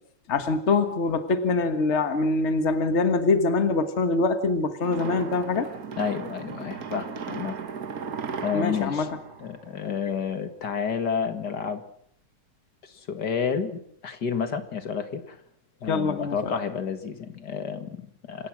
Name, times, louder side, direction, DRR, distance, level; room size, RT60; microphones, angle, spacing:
voice 1, 0.3-5.7 8.5-9.2 9.8-9.9 15.9-16.6, left 3 dB, 70° left, 9 dB, 0.6 m, -24 dB
sound 1, 4.8-10.2, right 6 dB, 65° right, 0.9 m, -36 dB
voice 2, 6.0-7.6 8.4-9.1 9.4-11.8 12.8-15.4 15.8-18.5, left 6 dB, 40° left, 9 dB, 1.7 m, -30 dB
28.5 x 17.0 x 6.2 m, 0.64 s
omnidirectional pair, 3.7 m